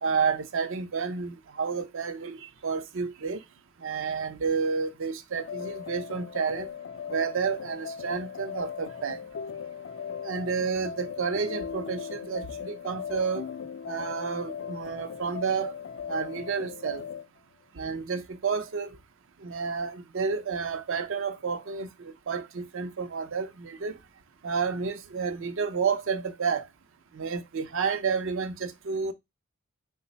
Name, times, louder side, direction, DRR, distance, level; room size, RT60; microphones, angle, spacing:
voice 1, 0.0-3.4 3.8-6.7 7.1-9.2 10.2-13.5 13.9-15.7 16.1-17.0 17.8-18.9 19.4-24.0 24.4-26.7 27.1-29.1, right 5 dB, 60° right, 0.5 m, -30 dB
sound 1, 5.4-17.3, left 7 dB, 55° left, 0.3 m, -38 dB
3.2 x 2.1 x 3.9 m
head